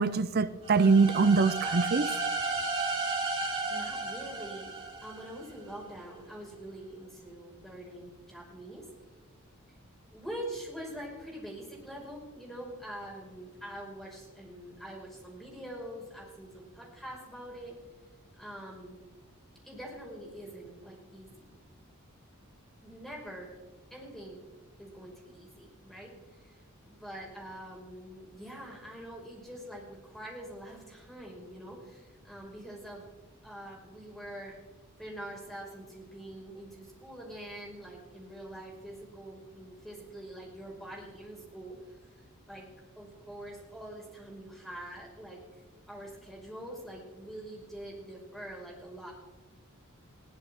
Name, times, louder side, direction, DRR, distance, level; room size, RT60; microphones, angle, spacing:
voice 1, 0.0-2.1, right 4 dB, 45° right, 0.5 m, -24 dB
sound 1, 0.6-5.5, right 3 dB, 25° right, 3.8 m, -33 dB
voice 2, 3.4-4.7 5.0-8.9 10.1-17.8 18.3-19.0 19.6-21.6 22.8-23.5 23.9-24.4 24.8-33.1 33.4-34.6 35.0-41.8 42.5-42.7 42.9-45.4 45.9-49.1, right 1 dB, ahead, 5.1 m, -44 dB
21.0 x 16.0 x 3.6 m
head